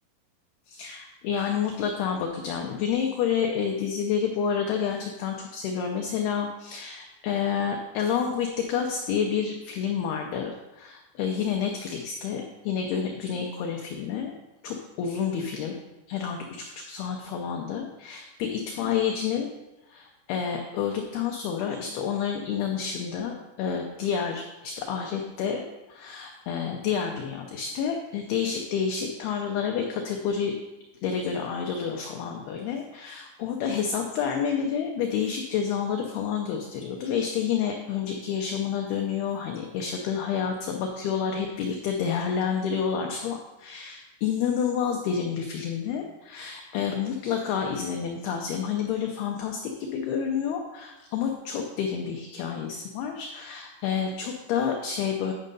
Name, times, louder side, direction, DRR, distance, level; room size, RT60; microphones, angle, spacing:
voice 1, 0.7-14.4 14.6-15.7 16.1-19.5 19.9-30.5 31.0-55.3, left 7 dB, 85° left, 2 dB, 2.2 m, -29 dB
10.5 x 5.5 x 5.3 m, 1.0 s
omnidirectional pair, 5.5 m